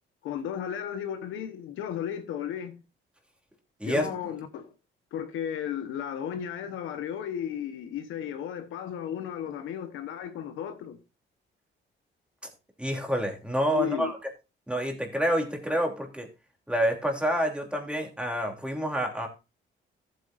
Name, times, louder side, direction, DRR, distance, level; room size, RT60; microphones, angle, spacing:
voice 1, 0.2-2.8 3.8-4.7 5.1-11.0 13.7-14.1, left 9 dB, 90° left, 1.3 m, -34 dB
voice 2, 3.8-4.1 12.8-14.2 14.7-16.3 16.7-19.3, equal, 5° right, 3.2 m, -28 dB
14.0 x 8.4 x 2.6 m
cardioid pair, 90°, 20 cm